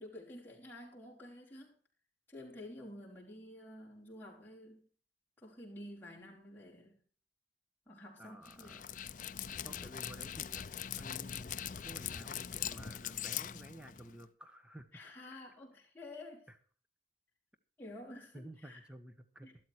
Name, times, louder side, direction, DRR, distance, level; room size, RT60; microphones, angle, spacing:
voice 1, 0.0-1.7 2.3-4.9 5.4-7.0 7.9-9.1 14.9-16.5 17.8-18.8 19.4-19.6, left 1 dB, 10° left, -5 dB, 4.8 m, -50 dB
voice 2, 8.2-8.9 9.6-14.9 16.5-16.6 18.3-19.5, equal, 5° right, 9 dB, 1.2 m, -53 dB
Dog, 8.5-14.2, left 9 dB, 45° left, 0.5 m, -42 dB
13.0 x 12.5 x 4.5 m, 0.41 s
head